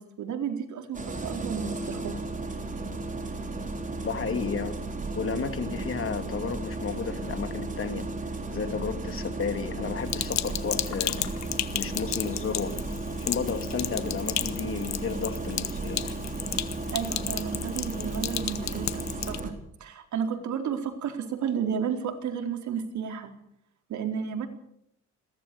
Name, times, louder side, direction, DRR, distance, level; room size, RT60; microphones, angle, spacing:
voice 1, 0.0-2.2 16.9-23.3 23.9-24.5, right 7 dB, 70° right, 4 dB, 4.2 m, -32 dB
Engine starting, 0.9-19.5, right 3 dB, 25° right, 4.4 m, -34 dB
voice 2, 4.0-4.8 5.2-8.1 8.5-11.2 11.7-12.8 13.2-16.1, left 6 dB, 45° left, 8 dB, 2.8 m, -32 dB
Sink (filling or washing), 10.1-19.4, left 11 dB, 65° left, 1.4 m, -34 dB
22.0 x 17.5 x 7.0 m, 0.72 s
cardioid pair, 90°, 30 cm